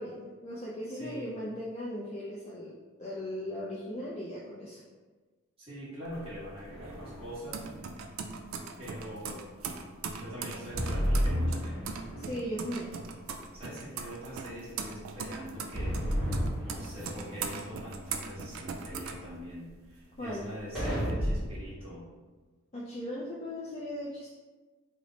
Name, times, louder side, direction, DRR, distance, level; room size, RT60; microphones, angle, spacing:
voice 1, 0.0-4.8 12.1-12.9 20.2-20.4 22.7-24.3, equal, 30° left, -6 dB, 0.4 m, -38 dB
voice 2, 0.9-1.4 5.6-7.7 8.8-9.4 10.1-11.8 13.5-22.1, equal, 30° right, -9 dB, 1.2 m, -43 dB
sound 1, 6.1-19.9 20.3-21.1, right 5 dB, 80° right, 0.3 m, -40 dB
sound 2, 6.7-7.4 10.7-12.4 15.7-17.4 20.7-21.7, equal, ahead, 1.0 m, -31 dB
3.2 x 2.0 x 3.8 m, 1.3 s
head